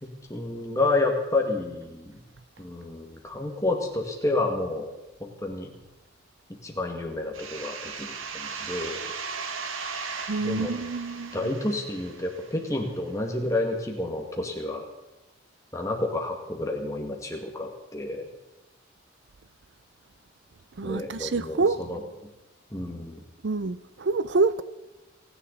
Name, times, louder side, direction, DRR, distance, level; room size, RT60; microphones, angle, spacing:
voice 1, 0.0-2.2 2.6-4.9 5.2-5.7 6.6-9.1 10.4-10.7 11.3-14.9 15.7-18.3 20.8-22.0 22.7-23.2, left 2 dB, 15° left, 2.0 m, -30 dB
sound 1, 7.3-12.9, right 5 dB, 80° right, 1.6 m, -37 dB
voice 2, 10.3-11.4 20.8-21.8 23.4-24.6, right 3 dB, 55° right, 0.5 m, -26 dB
30.0 x 10.5 x 4.1 m
head